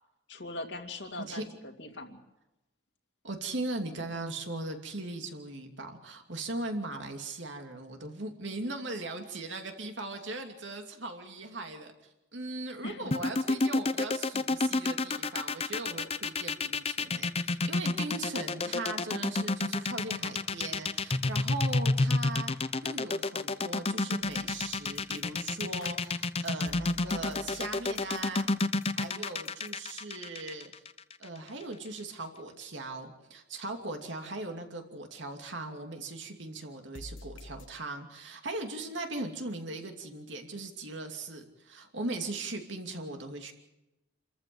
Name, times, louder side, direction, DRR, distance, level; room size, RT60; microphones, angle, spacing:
voice 1, 0.3-2.2 12.8-13.2, left 2 dB, 60° left, 4 dB, 2.5 m, -41 dB
voice 2, 3.2-11.9 12.3-28.7 29.0-30.7 31.2-43.5, right 2 dB, 70° right, 4 dB, 2.7 m, -39 dB
sound 1, 13.1-31.2, left 3 dB, 30° left, 0.7 m, -29 dB
sound 2, 24.2-29.9 36.9-37.7, left 2 dB, 85° left, 1.4 m, -49 dB
27.5 x 14.5 x 7.8 m, 0.95 s
head